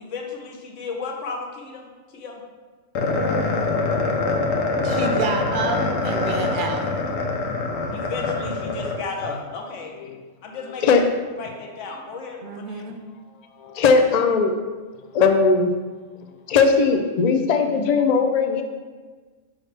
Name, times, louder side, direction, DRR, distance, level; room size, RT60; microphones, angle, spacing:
voice 1, 0.0-2.4 7.9-10.0 10.4-10.9 11.4-12.8, left 4 dB, 70° left, 1 dB, 1.2 m, -34 dB
sound 1, 2.9-9.4, left 3 dB, 90° left, 1.2 m, -24 dB
voice 2, 4.8-6.8 12.4-13.0, right 4 dB, 45° right, 3 dB, 0.8 m, -28 dB
voice 3, 13.6-14.6 15.1-15.7 16.5-18.6, left 4 dB, 50° left, 5 dB, 0.5 m, -18 dB
6.3 x 6.1 x 3.3 m, 1.4 s
omnidirectional pair, 1.3 m